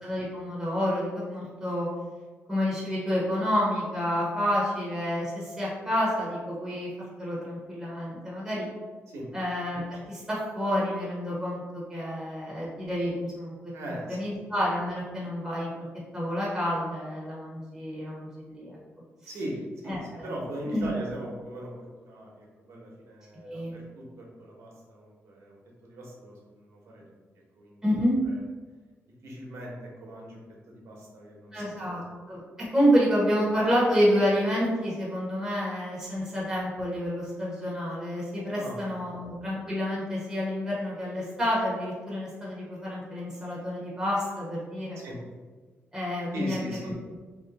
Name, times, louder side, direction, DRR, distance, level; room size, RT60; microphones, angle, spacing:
voice 1, 0.0-1.9 2.5-6.9 7.2-8.7 9.3-15.7 16.1-18.8 19.9-20.3 20.7-20.9 23.4-23.7 27.8-28.2 31.5-32.4 32.7-45.0 45.9-46.9, equal, 10° right, -6 dB, 0.9 m, -29 dB
voice 2, 13.7-14.3 19.3-19.5 19.8-21.7 22.0-27.0 27.5-27.8 28.2-28.4 29.2-32.1 38.5-39.1 45.0-45.2 46.3-46.9, right 1 dB, 80° right, -2 dB, 1.0 m, -40 dB
3.1 x 2.7 x 4.0 m, 1.4 s
wide cardioid pair, 160°, 5 cm